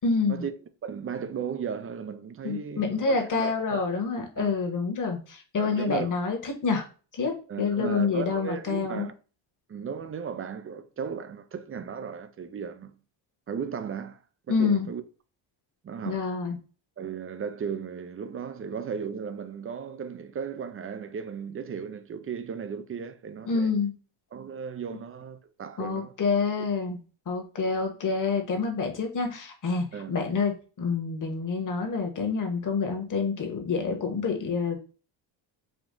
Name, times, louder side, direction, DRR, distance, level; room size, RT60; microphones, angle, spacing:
voice 1, 0.0-0.4 2.4-6.9 7.1-9.1 14.5-14.9 16.0-16.6 23.5-23.9 25.8-27.0 27.3-34.8, left 4 dB, 40° left, 1.4 m, -27 dB
voice 2, 0.8-3.8 4.4-4.5 5.6-6.1 7.5-9.1 9.7-12.9 13.5-14.2 14.5-15.0 15.8-16.3 17.0-23.7 24.3-26.1 29.9-30.1, right 7 dB, 30° right, 0.5 m, -35 dB
5.0 x 2.4 x 3.7 m
cardioid pair, 90°, 47 cm